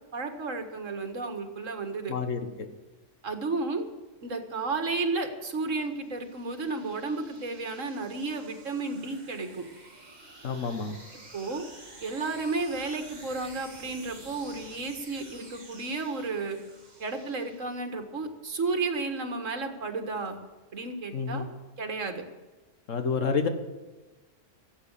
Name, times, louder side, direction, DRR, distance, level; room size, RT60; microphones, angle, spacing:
voice 1, 0.1-2.1 3.2-3.9 4.2-9.7 11.3-11.6 12.0-16.6 17.0-20.4 20.7-21.5 21.8-22.2, right 3 dB, 75° right, 6 dB, 2.1 m, -32 dB
voice 2, 2.1-2.7 10.4-11.0 21.1-21.5 22.9-23.5, left 5 dB, 75° left, 8 dB, 1.7 m, -29 dB
sound 1, 4.9-18.1, right 2 dB, 35° right, 2.0 m, -50 dB
14.5 x 8.2 x 8.3 m, 1.2 s
omnidirectional pair, 1.3 m